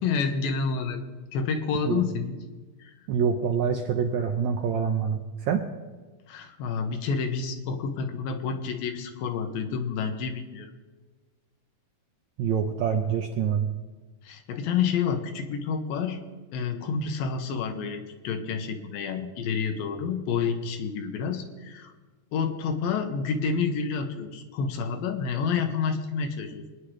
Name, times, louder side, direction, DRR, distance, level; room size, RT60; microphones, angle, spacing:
voice 1, 0.0-1.0 1.3-2.3 2.8-2.9 6.3-10.7 14.2-16.2 16.5-21.9 22.3-26.7, left 5 dB, 90° left, 6 dB, 2.8 m, -29 dB
voice 2, 3.1-5.6 12.4-13.7, right 7 dB, 75° right, 3 dB, 1.7 m, -26 dB
23.5 x 10.0 x 3.2 m, 1.3 s
omnidirectional pair, 4.1 m